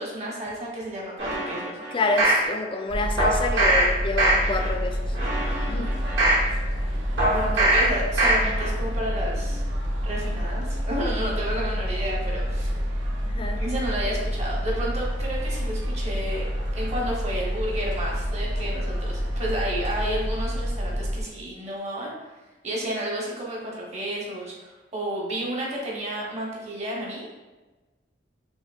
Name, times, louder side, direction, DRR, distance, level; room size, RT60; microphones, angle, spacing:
voice 1, 0.0-1.8 5.4-6.0 7.3-9.6 10.0-12.7 13.6-16.5 16.7-22.1 22.6-27.4, right 1 dB, 40° right, -4 dB, 0.9 m, -31 dB
sound 1, 1.2-2.4 3.2-3.8 4.2-4.7 5.1-6.4 7.2-7.8 8.2-8.7 9.1-9.2, right 1 dB, 75° right, 1.4 m, -22 dB
voice 2, 1.9-5.2 5.7-5.9 13.2-13.6, left 3 dB, 30° left, 5 dB, 0.3 m, -28 dB
sound 2, 2.9-21.2, equal, 90° right, 0.6 m, -28 dB
5.0 x 2.6 x 2.3 m, 1.2 s
head